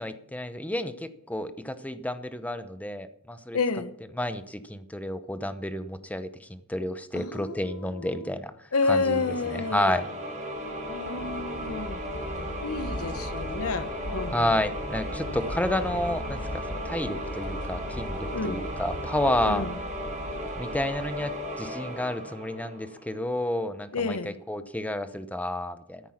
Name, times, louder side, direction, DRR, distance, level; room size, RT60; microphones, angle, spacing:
voice 1, 0.0-3.6 4.2-8.5 8.9-9.2 9.5-10.1 14.3-19.6 20.5-26.0, left 1 dB, 5° left, 0.8 m, -30 dB
voice 2, 3.5-3.9 7.1-8.3 8.7-10.0 10.9-12.0 12.6-14.6 18.3-18.7 19.4-19.7 23.9-24.3, left 3 dB, 70° left, 1.0 m, -30 dB
sound 1, 8.9-23.5, equal, 35° right, 5.5 m, -36 dB
sound 2, 10.6-21.6, equal, 90° left, 2.9 m, -39 dB
13.5 x 9.9 x 5.9 m
head